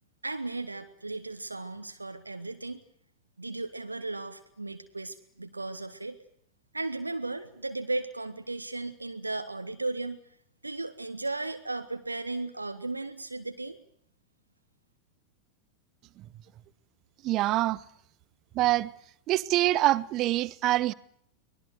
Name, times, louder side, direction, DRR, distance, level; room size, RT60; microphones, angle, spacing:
voice 1, 0.2-2.8 3.4-6.2 6.7-10.2 10.6-13.8, right 2 dB, 80° right, 1.6 m, -35 dB
voice 2, 17.2-17.8 18.5-18.9 19.3-20.9, right 16 dB, 35° right, 1.0 m, -25 dB
24.5 x 21.0 x 8.0 m
figure-of-eight pair, 90°, 0 cm